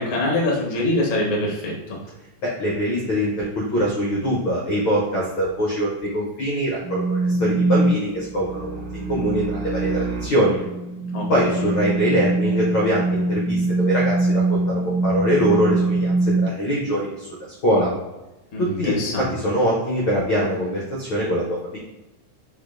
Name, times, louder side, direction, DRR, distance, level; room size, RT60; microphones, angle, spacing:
voice 1, 0.0-2.0 11.1-11.7 18.5-19.3, left 1 dB, 60° left, -3 dB, 0.8 m, -24 dB
voice 2, 2.4-10.6 11.3-16.1 16.4-17.3 17.6-17.9 18.6-21.8, equal, 75° left, -4 dB, 1.1 m, -23 dB
sound 1, 6.8-16.5, right 2 dB, 65° right, 1.6 m, -23 dB
5.0 x 4.0 x 2.5 m, 1.0 s
omnidirectional pair, 3.5 m